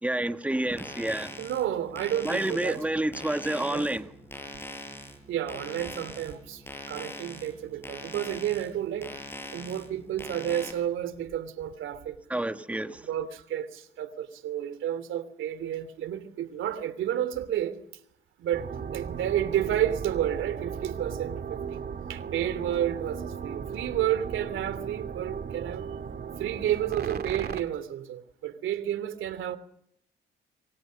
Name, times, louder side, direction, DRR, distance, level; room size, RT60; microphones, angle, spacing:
voice 1, 0.0-1.4 2.2-4.1 12.3-13.1, right 1 dB, 5° right, 1.7 m, -29 dB
sound 1, 0.7-10.7, left 1 dB, 10° left, 7.5 m, -42 dB
voice 2, 1.4-2.8 3.6-3.9 5.3-9.2 9.5-12.2 13.0-17.8 18.4-21.8 22.1-25.9 26.4-29.6, right 11 dB, 80° right, 3.0 m, -31 dB
sound 2, 18.5-27.6, right 7 dB, 50° right, 2.6 m, -36 dB
26.5 x 25.5 x 6.5 m
cardioid pair, 90°, 20 cm